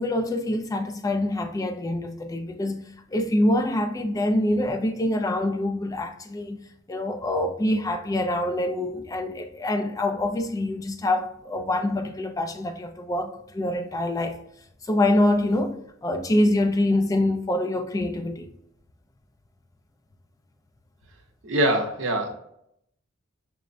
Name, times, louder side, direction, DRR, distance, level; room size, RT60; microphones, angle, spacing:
voice 1, 0.0-14.4 14.9-18.5, left 1 dB, 15° left, 0.3 m, -25 dB
voice 2, 21.4-22.3, right 1 dB, 70° right, 0.8 m, -23 dB
5.9 x 2.1 x 2.5 m
head